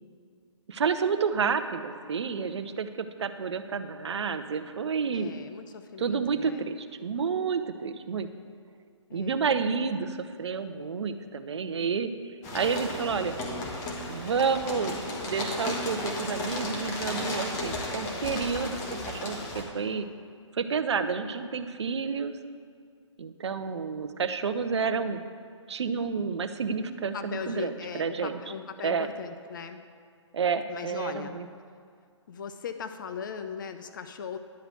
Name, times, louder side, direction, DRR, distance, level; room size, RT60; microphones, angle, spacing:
voice 1, 0.7-5.3 6.0-8.3 9.1-13.3 14.1-20.1 20.5-22.4 23.2-25.2 25.7-28.4 28.8-29.1 30.3-31.5, right 5 dB, 60° right, 9 dB, 0.7 m, -30 dB
voice 2, 5.1-6.7 9.1-9.4 27.1-29.8 30.7-31.3 32.3-34.4, left 6 dB, 40° left, 8 dB, 0.5 m, -39 dB
sound 1, 12.4-19.6, left 2 dB, 20° left, 1.3 m, -34 dB
10.5 x 4.9 x 7.6 m, 2.2 s
figure-of-eight pair, 140°, 16 cm